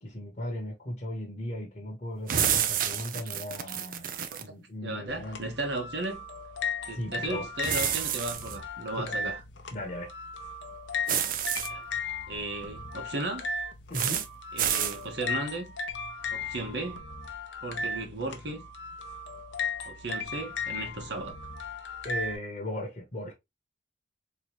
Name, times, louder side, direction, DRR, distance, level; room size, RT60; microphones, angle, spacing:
voice 1, 0.0-4.1 4.4-5.4 6.9-7.5 9.0-9.3 9.7-10.1 13.9-14.3 22.0-23.3, left 1 dB, 40° left, 1.0 m, -37 dB
sound 1, 2.3-4.5 7.6-8.6 11.1-11.7 13.9-14.3 14.6-15.0, right 9 dB, 45° right, 0.5 m, -29 dB
voice 2, 4.8-6.2 6.8-9.4 11.7-11.8 12.3-13.5 14.5-15.7 16.3-17.0 17.6-18.6 19.8-21.3, right 2 dB, 65° right, 1.1 m, -35 dB
sound 2, 5.1-22.4, left 4 dB, 80° left, 0.7 m, -37 dB
3.9 x 3.1 x 2.9 m
head